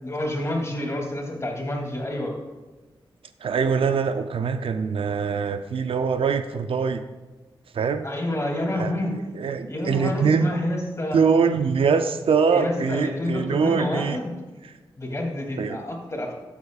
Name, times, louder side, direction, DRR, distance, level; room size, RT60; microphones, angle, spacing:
voice 1, 0.0-2.3 8.0-9.1 9.7-11.2 12.5-14.3 15.0-16.3, left 1 dB, 30° left, 0 dB, 2.7 m, -28 dB
voice 2, 3.4-7.0 7.7-8.1 8.8-8.9 9.3-10.5 11.1-14.2 14.6-14.7 15.6-15.8, right 5 dB, 80° right, 9 dB, 0.6 m, -23 dB
13.5 x 8.4 x 2.4 m, 1.3 s
cardioid pair, 70°, 9 cm